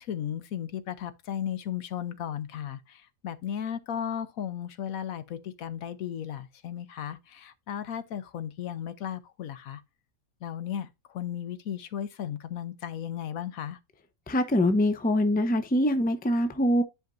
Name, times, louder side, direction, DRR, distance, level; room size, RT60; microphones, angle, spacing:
voice 1, 0.0-9.8 10.4-13.8, left 9 dB, 80° left, 1.2 m, -35 dB
voice 2, 14.3-16.8, left 1 dB, 10° left, 0.5 m, -24 dB
10.5 x 5.1 x 2.6 m
omnidirectional pair, 1.5 m